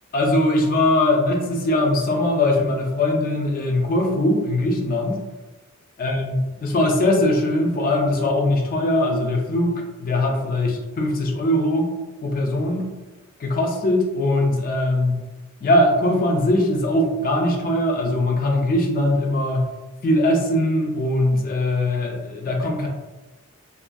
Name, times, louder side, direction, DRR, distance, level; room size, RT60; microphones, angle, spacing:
voice 1, 0.1-5.2 6.0-9.7 10.0-11.9 12.2-12.9 13.4-15.2 15.6-19.7 20.0-22.9, left 1 dB, 40° left, 1 dB, 0.4 m, -21 dB
2.5 x 2.3 x 2.3 m, 1.2 s
head